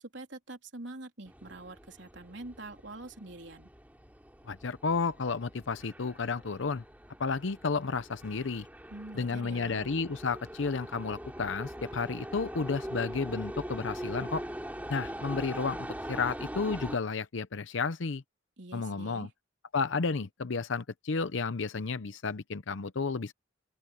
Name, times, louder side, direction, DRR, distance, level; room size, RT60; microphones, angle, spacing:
voice 1, 0.0-3.7 8.9-9.8 18.6-19.3, right 2 dB, 65° right, 3.5 m, -45 dB
sound 1, 1.3-17.0, equal, 10° right, 3.1 m, -42 dB
voice 2, 4.5-6.8 7.2-8.7 9.2-14.4 14.9-18.2 18.7-19.3 19.7-23.3, left 4 dB, 75° left, 0.7 m, -32 dB
open air
head